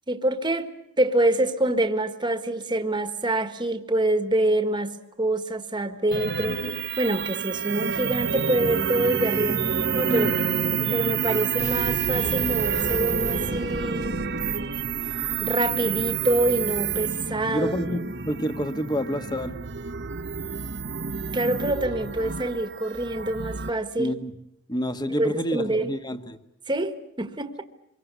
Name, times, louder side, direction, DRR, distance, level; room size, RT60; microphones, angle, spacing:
voice 1, 0.1-6.6 7.0-9.6 9.9-10.3 10.9-14.2 15.4-17.7 21.3-24.1 25.1-26.0 26.7-27.6, right 1 dB, 20° right, 8 dB, 1.5 m, -26 dB
sound 1, 6.1-23.7, right 6 dB, 55° right, 1.0 m, -28 dB
Boom, 11.6-16.5, equal, 35° left, 1.6 m, -38 dB
voice 2, 17.5-19.6 24.0-24.3 24.7-26.4, equal, 20° left, 9 dB, 1.4 m, -28 dB
25.5 x 22.5 x 8.1 m, 0.81 s
head